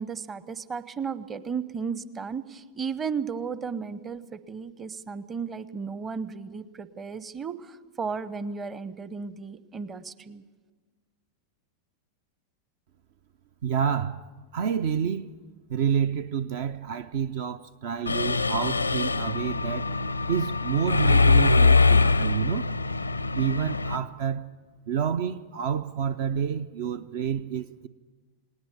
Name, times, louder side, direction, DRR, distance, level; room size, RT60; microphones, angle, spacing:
voice 1, 0.0-10.4, right 5 dB, 20° right, 0.9 m, -34 dB
voice 2, 13.6-14.2 14.5-15.4 15.7-19.9 20.3-22.7 23.3-24.5 24.9-27.9, right 8 dB, 50° right, 0.6 m, -28 dB
Mechanisms, 18.1-24.0, left 4 dB, 80° left, 0.5 m, -23 dB
19.5 x 18.5 x 8.5 m
figure-of-eight pair, 90°, 0 cm